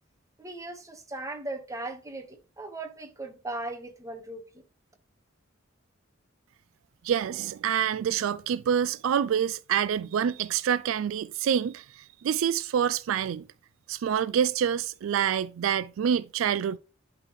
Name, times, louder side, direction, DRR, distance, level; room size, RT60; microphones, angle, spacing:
voice 1, 0.4-4.4, right 2 dB, 15° right, 1.2 m, -38 dB
voice 2, 7.0-13.5 13.9-16.8, right 8 dB, 80° right, 0.3 m, -27 dB
11.0 x 3.8 x 3.1 m
head